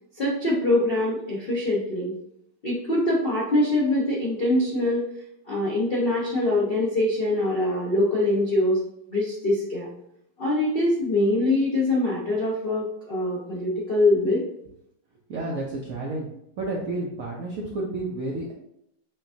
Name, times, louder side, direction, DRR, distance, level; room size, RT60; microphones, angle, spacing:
voice 1, 0.2-2.1 2.6-5.0 5.5-8.8 9.1-9.9 10.4-14.4, left 1 dB, 80° left, -5 dB, 0.5 m, -23 dB
voice 2, 15.3-16.3 16.6-18.5, right 2 dB, 70° right, -3 dB, 0.8 m, -30 dB
5.7 x 2.2 x 2.6 m, 0.76 s
omnidirectional pair, 2.2 m